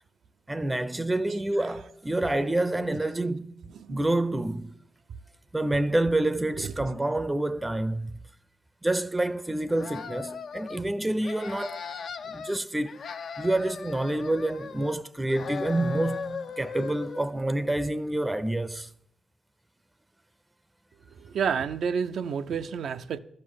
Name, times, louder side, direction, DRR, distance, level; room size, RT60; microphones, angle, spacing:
voice 1, 0.5-3.5 3.9-4.7 5.5-8.2 8.8-11.8 12.3-13.0 13.4-18.9, right 1 dB, 15° right, 0.6 m, -28 dB
sound 1, 9.7-10.8 11.2-12.6 12.9-15.0 15.3-17.3, left 5 dB, 65° left, 0.6 m, -38 dB
voice 2, 21.2-23.2, right 7 dB, 70° right, 0.5 m, -30 dB
12.5 x 5.4 x 8.5 m
supercardioid pair, 50°, 0 cm